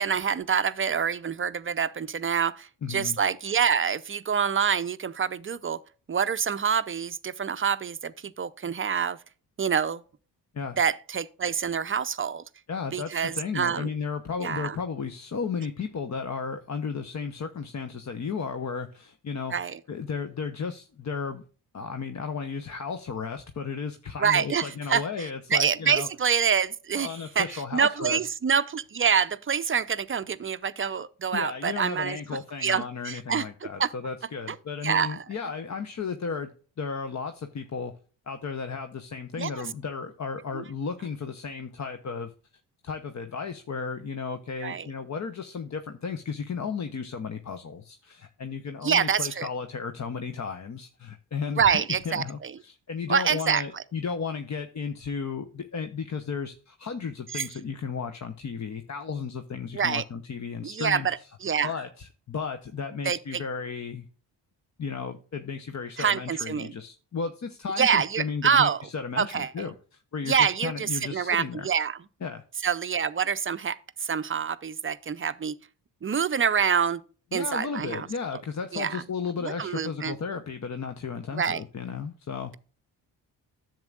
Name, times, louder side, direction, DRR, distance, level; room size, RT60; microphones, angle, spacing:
voice 1, 0.0-5.8 6.1-9.2 9.6-10.0 10.8-12.4 12.9-13.9 14.4-14.8 19.5-19.8 24.2-25.0 25.5-27.1 27.4-32.2 32.6-33.4 33.8-33.9 34.5-34.6 34.8-35.2 39.4-39.6 40.5-40.6 44.6-44.9 48.8-49.5 51.6-52.5 53.1-53.6 57.3-57.5 59.7-60.0 60.6-61.7 63.0-63.4 66.0-66.7 67.8-68.8 69.2-69.5 70.3-72.0 72.6-75.5 76.0-77.0 77.3-78.1 78.7-79.0 79.4-80.1 81.4-81.6, right 7 dB, 30° right, 0.5 m, -26 dB
voice 2, 2.8-3.2 10.5-10.8 12.7-21.4 21.7-26.1 27.0-28.2 31.3-36.5 36.8-37.9 38.3-42.3 42.8-61.3 61.6-64.1 64.8-71.7 72.2-72.4 77.3-82.5, left 5 dB, 40° left, 0.9 m, -34 dB
10.5 x 7.4 x 2.4 m
supercardioid pair, 50°, 43 cm